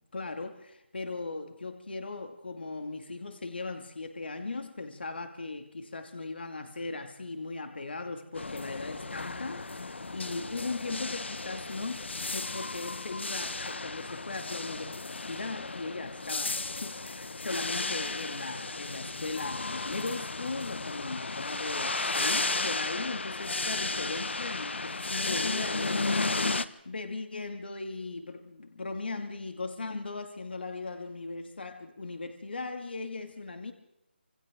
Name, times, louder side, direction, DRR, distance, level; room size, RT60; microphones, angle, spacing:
voice 1, 0.0-33.7, left 3 dB, 65° left, 2.4 m, -38 dB
sound 1, 8.4-26.7, left 3 dB, 85° left, 1.3 m, -34 dB
26.5 x 25.5 x 3.8 m
figure-of-eight pair, 175°, 6 cm